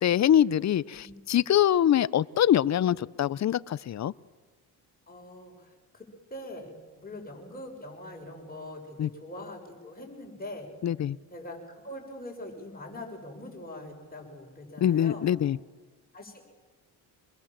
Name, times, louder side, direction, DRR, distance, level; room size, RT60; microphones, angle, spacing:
voice 1, 0.0-4.1 9.0-9.1 10.8-11.2 14.8-15.6, left 10 dB, 40° left, 20 dB, 0.6 m, -24 dB
voice 2, 0.9-1.4 5.1-10.7 11.3-15.3 16.1-16.5, left 1 dB, 20° left, 1 dB, 6.5 m, -43 dB
25.5 x 22.0 x 7.5 m, 1.4 s
cardioid pair, 90°, 40 cm